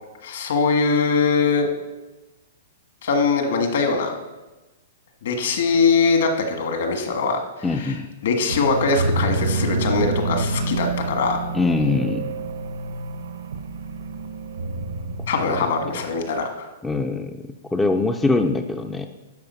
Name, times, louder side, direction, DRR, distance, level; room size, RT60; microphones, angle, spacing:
voice 1, 0.2-1.7 3.0-4.1 5.2-11.4 15.3-16.7, left 4 dB, 65° left, 4 dB, 1.6 m, -22 dB
voice 2, 7.6-8.1 11.5-12.3 15.5-15.6 16.8-17.4 17.7-19.1, left 3 dB, 5° left, 6 dB, 0.3 m, -22 dB
sound 1, 8.5-16.1, right 2 dB, 85° right, 0.9 m, -28 dB
10.5 x 4.9 x 6.9 m, 1.1 s
hypercardioid pair, 170°, 0 cm